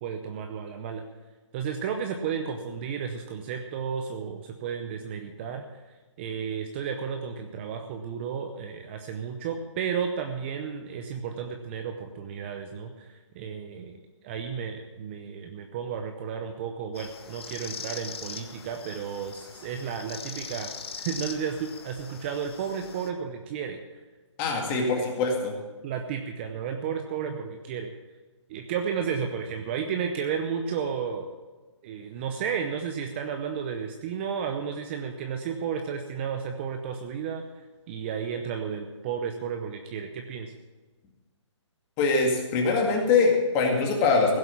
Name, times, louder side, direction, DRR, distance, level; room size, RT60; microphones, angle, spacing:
voice 1, 0.0-1.0 1.5-5.8 6.2-14.0 14.2-20.7 21.0-24.0 24.7-25.1 25.8-27.9 28.5-31.4 31.8-37.4 37.9-40.5, right 7 dB, 20° right, 5 dB, 0.7 m, -33 dB
sound 1, 16.9-23.1, left 6 dB, 55° left, 1.6 m, -41 dB
voice 2, 24.4-25.5 42.0-44.4, left 4 dB, 20° left, 1 dB, 2.1 m, -23 dB
16.0 x 7.8 x 7.1 m, 1.2 s
hypercardioid pair, 155°, 16 cm